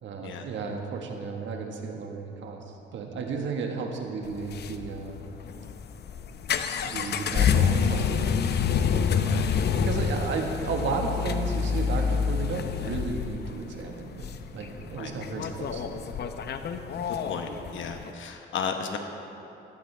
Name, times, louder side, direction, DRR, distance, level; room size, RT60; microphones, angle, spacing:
voice 1, 0.0-5.2 6.8-8.3 9.1-9.4 9.8-14.3 14.5-16.0, right 4 dB, 70° right, 2 dB, 1.5 m, -33 dB
sound 1, 4.2-18.1, left 6 dB, 55° left, 0.7 m, -28 dB
voice 2, 17.3-19.0, left 6 dB, 75° left, 4 dB, 1.1 m, -34 dB
14.0 x 12.5 x 3.4 m, 2.8 s
cardioid pair, 90°, 20 cm